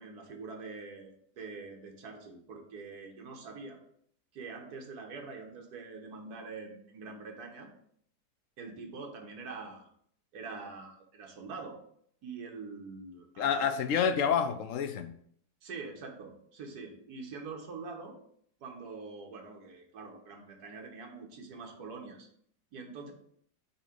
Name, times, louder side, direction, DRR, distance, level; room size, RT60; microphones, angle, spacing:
voice 1, 0.0-3.8 4.3-7.7 8.6-9.9 10.3-11.8 12.2-13.8 15.6-18.1 18.6-22.3 22.7-23.1, right 4 dB, 70° right, 1 dB, 1.6 m, -44 dB
voice 2, 13.4-15.1, left 7 dB, 65° left, 9 dB, 0.8 m, -28 dB
7.3 x 2.9 x 5.1 m, 0.65 s
omnidirectional pair, 1.8 m